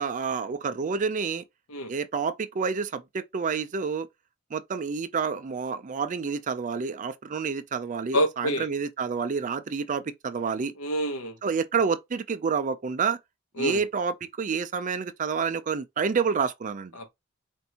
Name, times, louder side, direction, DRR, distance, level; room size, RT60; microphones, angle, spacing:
voice 1, 0.0-1.4 1.9-4.1 4.5-10.7 11.4-13.2 13.6-16.9, right 5 dB, 35° right, 0.4 m, -29 dB
voice 2, 8.1-8.7 10.8-11.4 13.6-13.8 17.0-17.1, equal, 70° left, 0.9 m, -27 dB
4.4 x 2.6 x 2.8 m
head